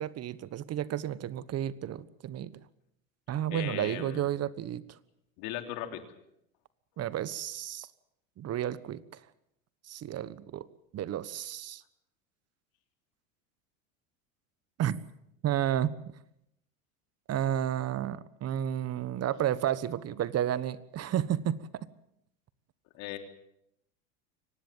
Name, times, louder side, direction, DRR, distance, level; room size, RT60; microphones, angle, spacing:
voice 1, 0.0-2.5 3.3-4.8 7.0-7.9 8.4-9.2 9.9-10.7 10.9-11.8 14.8-15.0 15.4-15.9 17.3-21.9, right 10 dB, 40° right, 17 dB, 1.3 m, -32 dB
voice 2, 3.5-4.3 5.4-6.0 22.9-23.2, left 12 dB, 65° left, 5 dB, 3.5 m, -38 dB
24.5 x 18.5 x 7.4 m, 0.79 s
hypercardioid pair, 95°, 39 cm